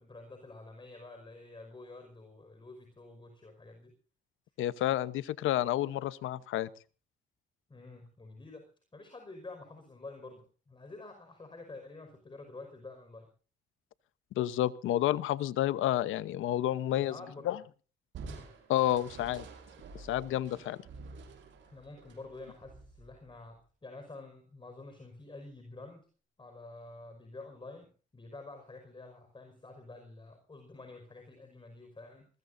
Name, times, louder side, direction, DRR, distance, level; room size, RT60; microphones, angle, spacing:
voice 1, 0.0-3.9 7.7-8.7 8.9-13.3 16.9-17.5 20.5-20.6 21.6-26.1 26.4-32.3, left 2 dB, 25° left, 5 dB, 5.4 m, -49 dB
voice 2, 4.6-6.7 14.4-17.1 17.4-17.6 18.7-19.5 19.9-20.8, left 13 dB, 85° left, 16 dB, 1.0 m, -30 dB
Crushing, 18.1-23.5, right 4 dB, 70° right, 6.7 m, -49 dB
22.0 x 20.5 x 2.7 m, 0.38 s
cardioid pair, 90°, 20 cm